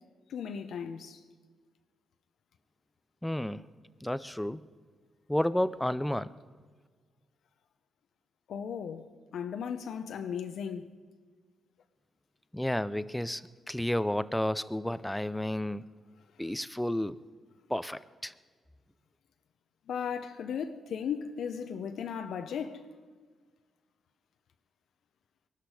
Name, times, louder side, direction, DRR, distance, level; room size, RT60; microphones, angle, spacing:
voice 1, 0.3-1.2 8.5-9.1 9.3-10.9 19.9-22.9, left 7 dB, 75° left, 0.7 m, -36 dB
voice 2, 3.2-3.6 4.0-4.6 5.3-6.4 12.5-15.9 16.4-17.2 17.7-18.3, left 1 dB, 5° left, 0.5 m, -31 dB
22.5 x 12.5 x 4.9 m
cardioid pair, 80°, 0 cm